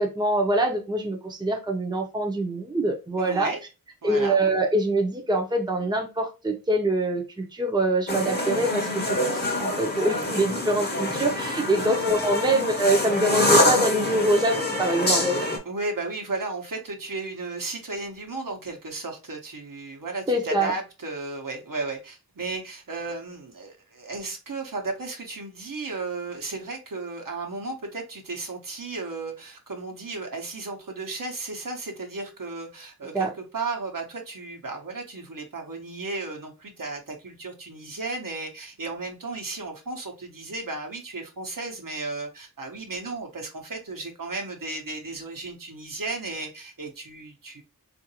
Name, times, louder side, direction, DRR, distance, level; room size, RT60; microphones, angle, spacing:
voice 1, 0.0-3.5 4.0-15.3 20.3-20.7 33.1-33.3, right 1 dB, 10° right, 0.6 m, -24 dB
voice 2, 3.2-3.6 4.0-4.4 11.7-12.0 15.6-47.6, right 3 dB, 65° right, 0.9 m, -34 dB
sound 1, 8.1-15.6, left 1 dB, 30° left, 0.9 m, -25 dB
3.7 x 2.5 x 2.8 m
wide cardioid pair, 60°, 36 cm